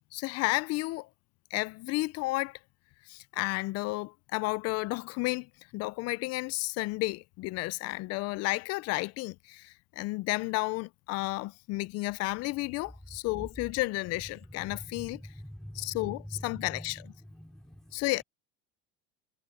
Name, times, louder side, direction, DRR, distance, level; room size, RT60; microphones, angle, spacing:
voice 1, 0.1-1.1 1.5-2.6 3.1-5.5 5.7-15.2 15.7-17.0 17.9-18.2, left 22 dB, 50° left, 0.5 m, -32 dB
voice 2, 14.4-18.0, equal, ahead, 4.2 m, -45 dB
supercardioid pair, 125°, 32 cm